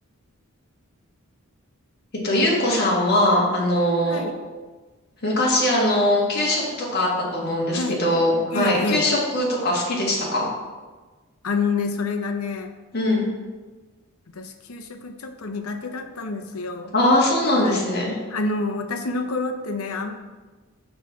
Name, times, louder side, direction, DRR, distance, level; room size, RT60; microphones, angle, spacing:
voice 1, 2.2-4.2 5.2-6.6 6.9-10.5 12.9-13.3 16.9-18.2, left 1 dB, 50° left, -4 dB, 1.8 m, -21 dB
voice 2, 4.0-4.4 7.7-8.0 8.5-9.1 11.4-12.7 14.3-16.9 17.5-17.8 18.3-20.2, left 3 dB, 80° left, 7 dB, 0.7 m, -28 dB
6.5 x 6.0 x 4.7 m, 1.3 s
head